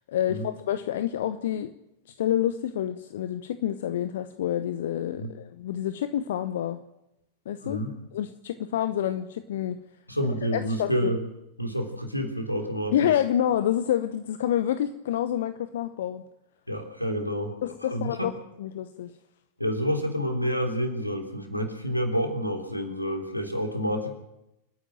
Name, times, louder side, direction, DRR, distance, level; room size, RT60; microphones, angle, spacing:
voice 1, 0.1-1.7 2.2-6.8 7.5-7.8 8.1-9.8 10.5-11.1 12.9-16.2 17.6-18.3 18.6-19.1, left 11 dB, 60° left, 11 dB, 0.9 m, -28 dB
voice 2, 7.6-7.9 10.1-11.2 11.6-13.1 16.7-17.6 17.9-18.3 19.6-24.1, equal, 90° left, 4 dB, 3.5 m, -28 dB
29.0 x 10.0 x 9.2 m, 0.89 s
figure-of-eight pair, 90°, 0 cm